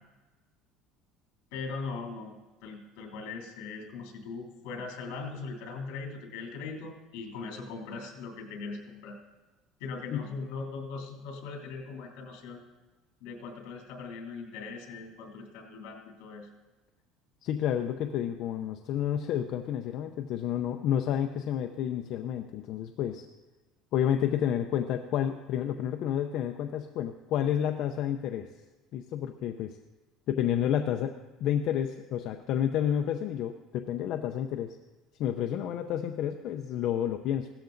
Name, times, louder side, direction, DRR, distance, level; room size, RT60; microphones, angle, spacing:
voice 1, 1.5-2.3 2.6-9.2 9.8-12.6 13.2-16.5, left 4 dB, 70° left, 1 dB, 3.1 m, -40 dB
voice 2, 17.4-23.2 23.9-28.5 28.9-29.8 30.3-34.8 35.2-37.5, left 10 dB, 45° left, 5 dB, 0.6 m, -30 dB
16.5 x 13.0 x 3.9 m, 1.2 s
cardioid pair, 180°, 0 cm